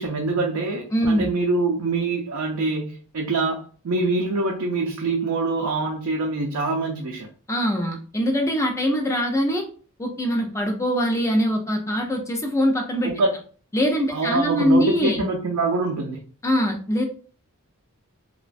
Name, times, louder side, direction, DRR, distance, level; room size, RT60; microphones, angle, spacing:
voice 1, 0.0-7.3 13.0-13.3 14.1-16.2, right 3 dB, 70° right, 0 dB, 0.4 m, -25 dB
voice 2, 0.9-1.3 7.5-9.6 10.0-13.1 13.7-15.2 16.4-17.0, equal, 15° left, 3 dB, 0.4 m, -22 dB
2.3 x 2.1 x 2.5 m, 0.41 s
head